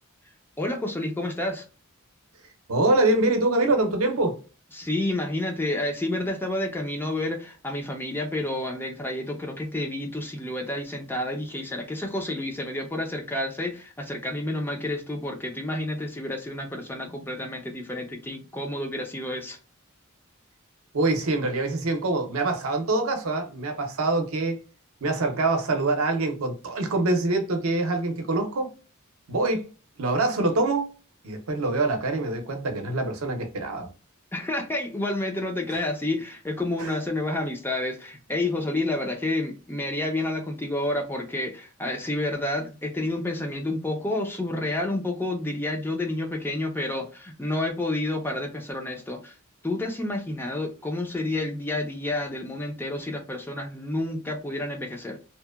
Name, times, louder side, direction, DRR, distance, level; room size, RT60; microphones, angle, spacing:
voice 1, 0.6-1.6 4.7-19.6 34.3-49.4 49.6-55.2, left 1 dB, 10° left, 0.4 m, -29 dB
voice 2, 2.7-4.4 20.9-24.6 25.0-28.7 29.3-29.7 30.0-30.9 31.2-33.9 35.7-35.8 36.8-37.0, right 2 dB, 75° right, 0.6 m, -25 dB
2.8 x 2.1 x 2.2 m
head